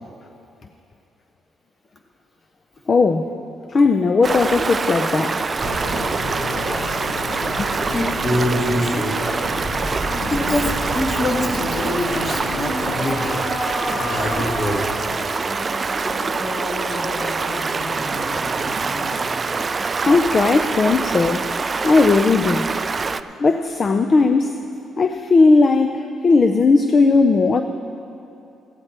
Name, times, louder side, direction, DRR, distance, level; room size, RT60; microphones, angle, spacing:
voice 1, 2.9-3.3 3.7-5.5 7.6-7.7 20.0-21.5 21.8-22.7 23.4-24.6 25.0-27.6, left 3 dB, 40° left, 7 dB, 0.5 m, -17 dB
Stream, 4.2-23.2, right 4 dB, 35° right, 0.3 m, -25 dB
sound 1, 5.6-13.3, left 3 dB, 85° left, 1.0 m, -31 dB
voice 2, 7.8-9.2 10.1-13.5 13.9-14.9, left 1 dB, 25° left, 0 dB, 1.8 m, -25 dB
sound 2, 12.0-21.4, left 2 dB, 55° left, 1.3 m, -33 dB
15.0 x 9.6 x 4.4 m, 2.8 s
cardioid pair, 90°, 0 cm